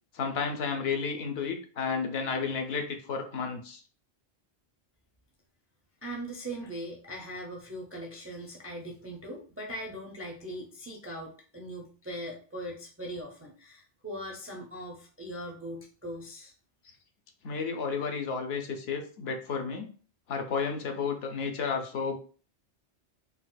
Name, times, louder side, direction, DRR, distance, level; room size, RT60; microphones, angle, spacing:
voice 1, 0.1-3.8 17.4-19.9 20.3-22.2, left 5 dB, 65° left, 4 dB, 0.8 m, -32 dB
voice 2, 6.0-16.5, equal, 20° right, -1 dB, 0.3 m, -40 dB
4.0 x 2.4 x 2.2 m, 0.40 s
omnidirectional pair, 1.2 m